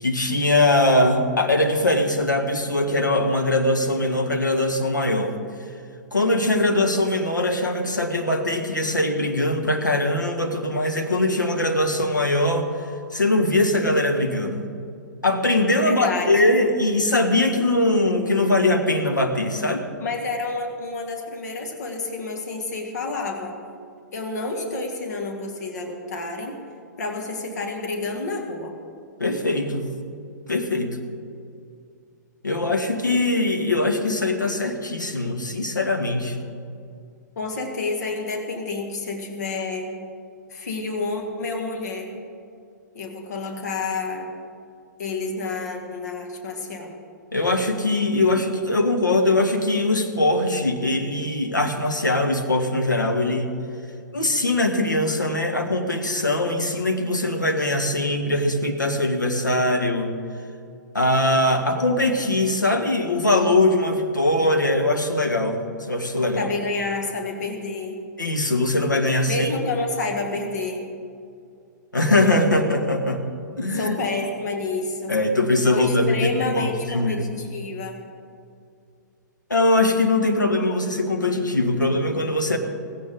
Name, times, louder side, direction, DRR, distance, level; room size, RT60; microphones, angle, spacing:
voice 1, 0.0-5.3 6.1-12.7 13.1-14.7 15.2-19.8 29.2-29.9 30.5-31.0 32.4-36.4 47.3-53.5 54.1-60.1 60.9-65.6 65.9-66.5 68.2-69.5 71.9-73.3 73.6-74.0 75.1-77.3 79.5-82.6, left 2 dB, 80° left, 4 dB, 1.6 m, -21 dB
voice 2, 15.8-16.5 20.0-23.6 24.1-26.6 27.0-28.7 37.4-39.9 40.5-42.1 42.9-44.3 45.0-46.9 66.4-68.0 69.3-70.9 73.7-75.2 75.7-78.0, left 3 dB, 60° left, 2 dB, 2.0 m, -29 dB
17.0 x 16.0 x 3.8 m, 2.4 s
figure-of-eight pair, 110°, 10 cm